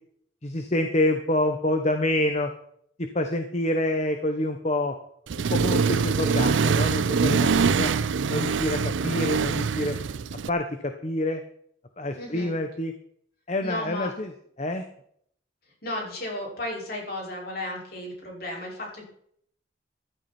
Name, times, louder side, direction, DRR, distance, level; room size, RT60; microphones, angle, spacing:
voice 1, 0.4-2.5 3.0-5.0 5.4-7.9 8.3-10.0 10.5-11.4 12.0-12.9 13.5-14.3 14.6-14.8, left 1 dB, 35° left, 6 dB, 1.1 m, -27 dB
Accelerating revving vroom, 5.3-10.5, right 5 dB, 80° right, 0.5 m, -24 dB
voice 2, 12.2-12.5 13.6-14.1 15.8-19.0, left 1 dB, 55° left, -1 dB, 5.8 m, -34 dB
15.0 x 12.5 x 4.4 m, 0.66 s
head